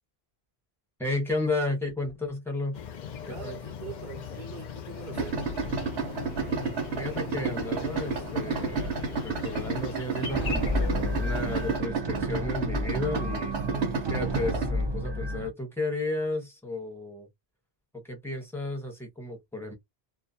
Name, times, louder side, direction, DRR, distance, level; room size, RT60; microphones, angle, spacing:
voice 1, 1.0-2.8 3.3-3.6 7.0-13.5 14.1-17.3 18.0-19.7, left 2 dB, ahead, 1.0 m, -33 dB
Oases SN, 2.7-11.8, left 7 dB, 55° left, 0.6 m, -39 dB
voice 2, 3.2-5.5 13.5-14.1, right 6 dB, 60° right, 0.7 m, -43 dB
Idling, 5.1-14.7, right 4 dB, 80° right, 1.0 m, -31 dB
sound 1, 10.3-15.5, equal, 40° right, 0.4 m, -31 dB
2.3 x 2.2 x 2.7 m
omnidirectional pair, 1.1 m